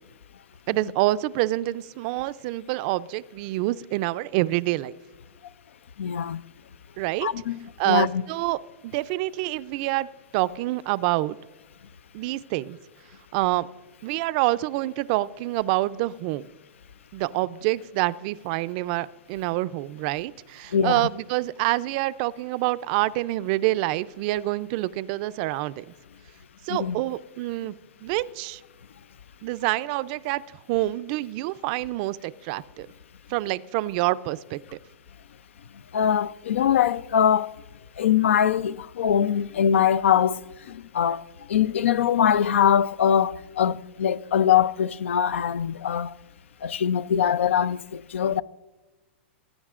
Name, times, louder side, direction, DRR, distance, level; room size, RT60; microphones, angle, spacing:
voice 1, 0.7-4.9 7.0-7.3 7.8-8.6 8.8-10.1 10.3-11.4 12.1-12.8 13.3-13.7 14.0-16.5 17.1-25.8 26.7-27.7 28.0-28.6 29.4-30.4 30.7-32.9 33.3-34.6, right 18 dB, 45° right, 0.4 m, -27 dB
voice 2, 6.0-6.4 7.2-8.2 20.7-21.1 26.7-27.0 35.9-37.5 38.0-46.2 46.6-48.4, left 9 dB, 90° left, 0.4 m, -23 dB
19.5 x 9.6 x 2.4 m
hypercardioid pair, 135°, 7 cm